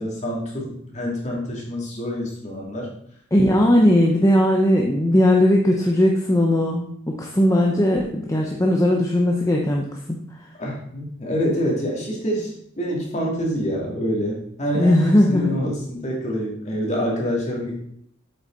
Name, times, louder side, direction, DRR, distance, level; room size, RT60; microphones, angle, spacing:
voice 1, 0.0-2.9 10.6-17.7, equal, 35° left, -3 dB, 2.6 m, -26 dB
voice 2, 3.3-10.4 14.7-15.6, left 1 dB, 15° left, 0 dB, 0.7 m, -18 dB
8.0 x 7.5 x 4.0 m, 0.68 s
head